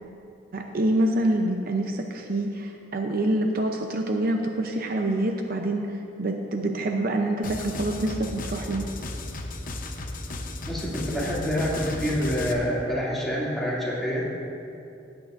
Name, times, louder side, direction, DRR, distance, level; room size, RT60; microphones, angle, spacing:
voice 1, 0.5-8.9, right 1 dB, 55° right, 3 dB, 0.6 m, -26 dB
sound 1, 7.4-12.5, left 2 dB, 50° left, 0.8 m, -35 dB
voice 2, 10.7-14.3, equal, ahead, -8 dB, 2.5 m, -27 dB
17.0 x 8.7 x 2.6 m, 2.7 s
head